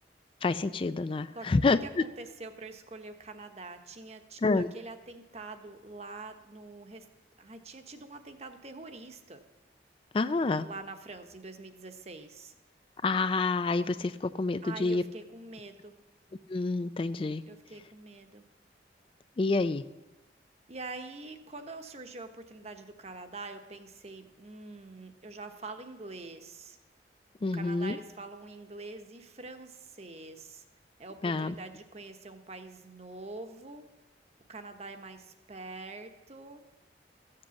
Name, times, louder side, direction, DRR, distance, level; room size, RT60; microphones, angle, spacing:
voice 1, 0.4-2.0 4.4-4.7 10.1-10.7 13.0-15.0 16.5-17.4 19.4-19.8 27.4-28.0 31.2-31.5, left 3 dB, 30° left, 13 dB, 0.3 m, -28 dB
voice 2, 1.8-7.0 7.4-9.4 10.6-12.5 14.6-16.0 17.5-18.4 20.7-26.8 27.5-30.6 31.0-33.8 34.5-36.6, right 3 dB, 35° right, 7 dB, 1.0 m, -45 dB
14.5 x 7.7 x 7.1 m, 1.1 s
head